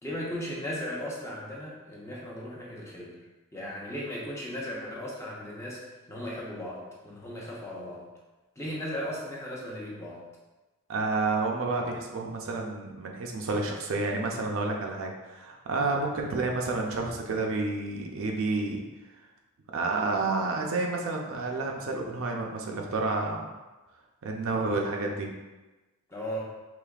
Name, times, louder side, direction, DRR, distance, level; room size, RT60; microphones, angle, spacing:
voice 1, 0.0-3.2 3.5-5.8 6.1-8.1 8.6-10.2 16.1-16.3 26.1-26.4, equal, 15° left, -5 dB, 0.8 m, -36 dB
voice 2, 10.9-18.8 19.7-23.5 24.2-25.3, right 3 dB, 60° right, 1 dB, 0.5 m, -30 dB
5.0 x 3.0 x 2.4 m, 1.1 s
head